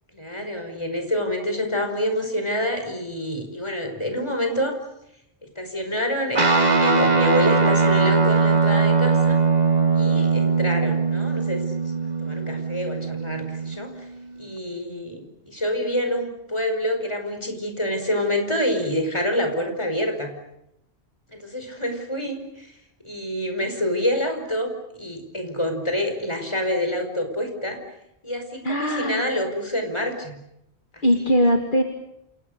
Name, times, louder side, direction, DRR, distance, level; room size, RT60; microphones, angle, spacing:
voice 1, 0.1-4.8 5.6-9.4 9.9-11.6 12.2-13.9 14.4-20.3 21.3-22.7 23.0-27.8 28.2-30.4, left 1 dB, 25° left, 5 dB, 5.3 m, -27 dB
Guitar, 6.4-14.0, right 4 dB, 40° right, 1.9 m, -20 dB
voice 2, 28.6-29.3 31.0-31.8, equal, 50° left, 4 dB, 2.4 m, -20 dB
29.0 x 28.0 x 6.7 m, 0.81 s
omnidirectional pair, 1.1 m